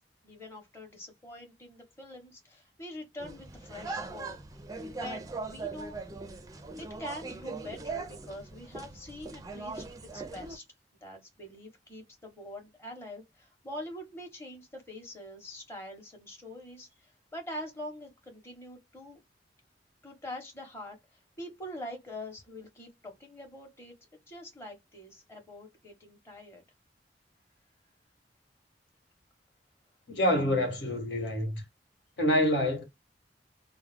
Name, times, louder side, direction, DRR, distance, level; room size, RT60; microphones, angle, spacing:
voice 1, 0.2-4.4 4.9-6.0 6.8-9.9 10.1-10.6 11.0-19.2 20.0-23.9 24.3-26.6, left 1 dB, 15° left, 0.8 m, -44 dB
sound 1, 3.2-10.6, right 3 dB, 20° right, 0.4 m, -40 dB
voice 2, 30.1-31.6 32.2-32.8, left 1 dB, 80° left, 1.2 m, -27 dB
2.3 x 2.0 x 3.3 m
head